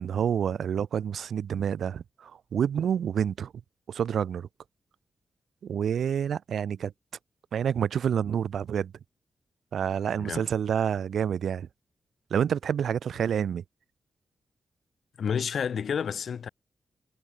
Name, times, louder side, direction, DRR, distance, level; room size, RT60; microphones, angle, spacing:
voice 1, 0.0-3.5 3.9-4.5 5.6-6.9 7.5-8.9 9.7-11.7 12.3-13.6, right 8 dB, 85° right, 1.5 m, -28 dB
voice 2, 10.2-10.5 15.2-16.5, left 7 dB, 70° left, 5.5 m, -30 dB
wide cardioid pair, 120°, 0 cm